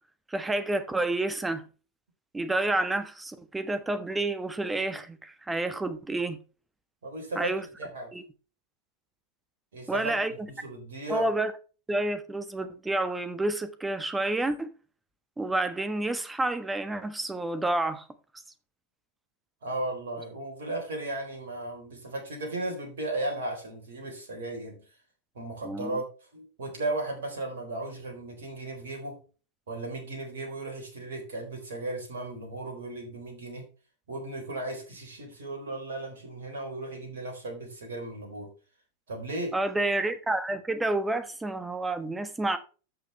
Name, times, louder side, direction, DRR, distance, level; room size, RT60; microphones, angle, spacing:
voice 1, 0.3-1.7 2.3-6.4 7.4-7.6 8.1-8.2 9.9-10.5 11.1-11.5 11.9-14.8 15.4-18.1 25.6-26.0 39.5-42.6, right 2 dB, 10° right, 1.3 m, -29 dB
voice 2, 7.0-7.5 7.8-8.1 9.7-10.1 10.5-11.3 19.6-24.8 25.3-26.1 26.3-29.2 29.7-33.6 34.1-38.5 39.1-39.6, right 2 dB, 60° right, 4.0 m, -35 dB
13.5 x 6.6 x 3.3 m
figure-of-eight pair, 90°, 0 cm